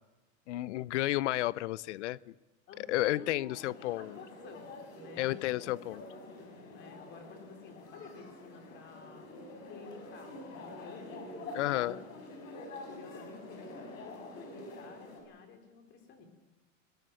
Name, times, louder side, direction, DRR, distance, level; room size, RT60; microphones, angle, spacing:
voice 1, 0.5-2.3 2.9-4.2 5.2-6.0 11.5-12.0, left 16 dB, 60° left, 22 dB, 0.6 m, -32 dB
voice 2, 2.7-4.7 5.0-9.3 9.7-12.0 12.4-16.3, left 5 dB, 30° left, 5 dB, 3.5 m, -52 dB
sound 1, 3.5-15.2, left 2 dB, 85° left, 6.4 m, -47 dB
20.0 x 17.0 x 9.1 m, 1.1 s
supercardioid pair, 160°, 39 cm